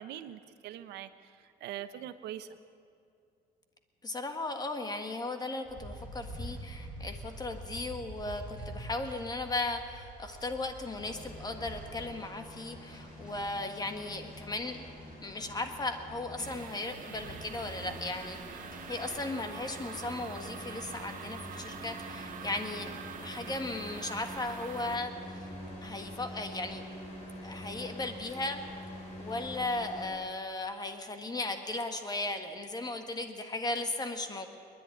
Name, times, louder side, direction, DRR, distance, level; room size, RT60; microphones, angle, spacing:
voice 1, 0.0-2.5, right 11 dB, 80° right, 11 dB, 1.1 m, -43 dB
voice 2, 4.0-14.9 15.2-22.9 23.2-25.4 25.8-26.8 27.4-28.6 29.2-34.6, left 2 dB, 25° left, 6 dB, 1.7 m, -36 dB
sound 1, 5.6-19.0, right 1 dB, 5° right, 7.2 m, -47 dB
sound 2, 11.0-30.1, left 1 dB, 40° left, 7.1 m, -46 dB
sound 3, 16.4-25.0, right 8 dB, 55° right, 1.5 m, -46 dB
25.5 x 10.5 x 9.8 m, 2.4 s
cardioid pair, 110°, 17 cm